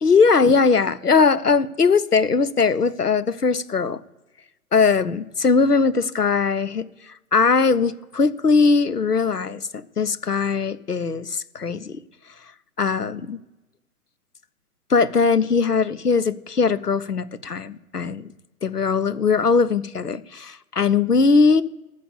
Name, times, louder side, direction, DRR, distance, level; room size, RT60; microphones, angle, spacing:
voice 1, 0.0-4.0 4.7-11.9 12.8-13.4 14.9-18.3 18.6-21.6, left 4 dB, 85° left, 16 dB, 1.0 m, -20 dB
13.5 x 6.0 x 7.2 m, 1.1 s
figure-of-eight pair, 120°, 45 cm